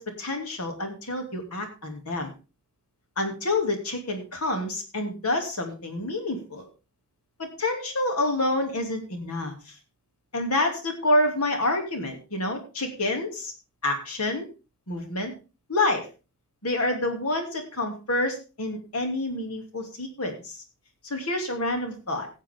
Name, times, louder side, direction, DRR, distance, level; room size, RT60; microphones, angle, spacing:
voice 1, 0.0-2.3 3.2-6.6 7.4-9.5 10.3-13.5 13.8-14.4 14.9-15.3 15.7-16.1 16.6-20.6 21.0-22.3, left 2 dB, 90° left, 4 dB, 2.8 m, -28 dB
18.0 x 7.3 x 3.7 m, 0.31 s
head